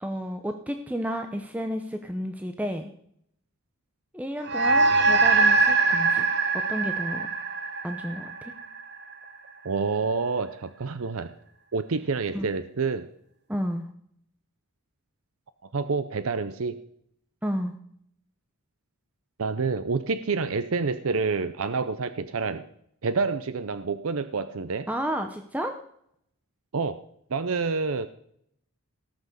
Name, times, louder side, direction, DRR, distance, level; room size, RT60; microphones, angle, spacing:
voice 1, 0.0-2.9 4.1-6.3 6.7-7.3 7.8-8.5 12.3-12.4 13.5-13.9 17.4-17.7 24.9-25.7, equal, 5° right, 5 dB, 0.7 m, -31 dB
sound 1, 4.4-9.1, right 3 dB, 50° right, 1.3 m, -23 dB
voice 2, 9.6-11.3 11.7-13.1 15.7-16.8 19.4-22.6 23.0-24.9 26.7-27.0 27.3-28.1, right 4 dB, 65° right, 12 dB, 0.6 m, -28 dB
18.0 x 6.1 x 6.8 m, 0.69 s
head